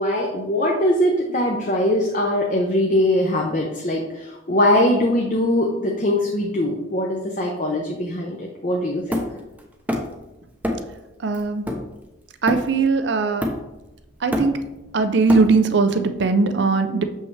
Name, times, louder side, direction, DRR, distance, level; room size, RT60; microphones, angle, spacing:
voice 1, 0.0-9.2, left 1 dB, 40° left, -1 dB, 0.8 m, -21 dB
Hammer, 9.1-10.2 10.6-11.0 11.3-12.9 13.4-13.9 14.1-15.8, left 1 dB, 10° right, 0.7 m, -27 dB
voice 2, 11.2-11.6 12.4-13.5 14.2-14.6 14.9-17.0, right 4 dB, 55° right, 8 dB, 0.5 m, -19 dB
6.7 x 5.5 x 3.3 m, 0.96 s
head